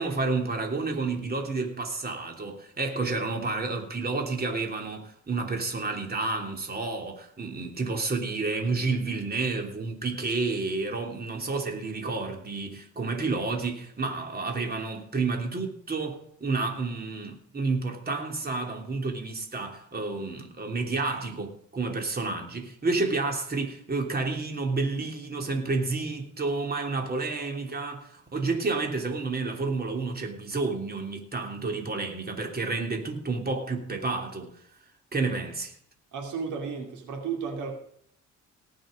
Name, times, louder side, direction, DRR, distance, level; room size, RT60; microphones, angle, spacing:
voice 1, 0.0-34.5 35.1-35.7, right 3 dB, 30° right, 3.1 m, -30 dB
voice 2, 36.1-37.8, right 5 dB, 80° right, 2.6 m, -33 dB
18.5 x 6.5 x 5.1 m
cardioid pair, 90°, 30 cm